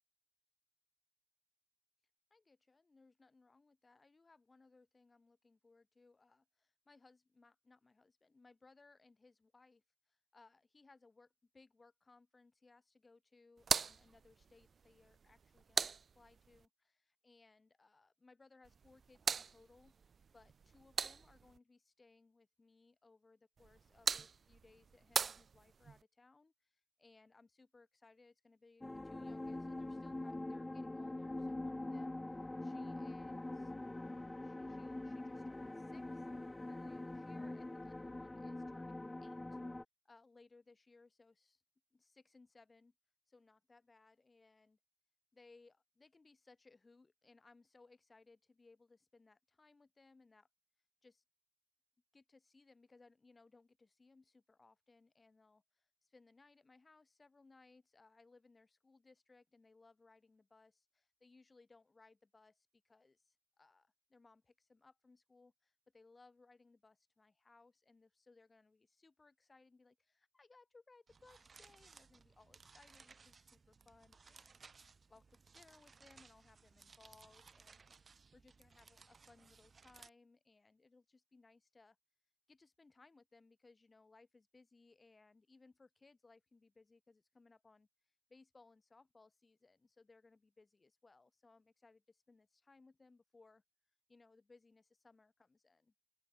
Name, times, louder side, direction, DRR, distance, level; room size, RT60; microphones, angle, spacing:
voice 1, 2.3-9.8 10.1-32.2 32.6-33.7 34.0-36.3 36.7-39.6 40.0-41.6 41.9-42.9 43.3-44.8 45.3-50.5 51.0-51.2 52.1-74.6 75.1-77.9 78.3-82.0 82.5-87.9 88.3-93.6 94.1-95.9, left 3 dB, 40° left, 4.1 m, -66 dB
sound 1, 13.6-16.7 18.6-21.6 23.6-26.0, right 6 dB, 80° right, 0.5 m, -41 dB
sound 2, 28.8-39.8, left 2 dB, 20° left, 0.6 m, -44 dB
sound 3, 71.1-80.1, right 5 dB, 60° right, 1.2 m, -62 dB
open air
wide cardioid pair, 95°, 0 cm